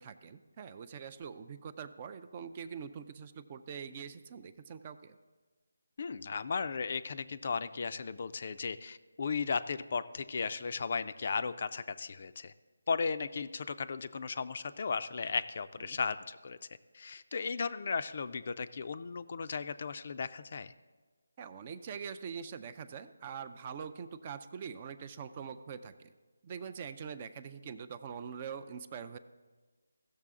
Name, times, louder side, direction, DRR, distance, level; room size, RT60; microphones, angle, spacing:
voice 1, 0.0-5.2 15.9-16.0 21.4-26.1 26.4-29.2, right 7 dB, 25° right, 11 dB, 0.4 m, -44 dB
voice 2, 6.0-12.5 12.9-16.6 16.9-20.7, left 5 dB, 45° left, 13 dB, 0.4 m, -36 dB
15.5 x 6.6 x 3.6 m, 1.3 s
figure-of-eight pair, 165°, 0 cm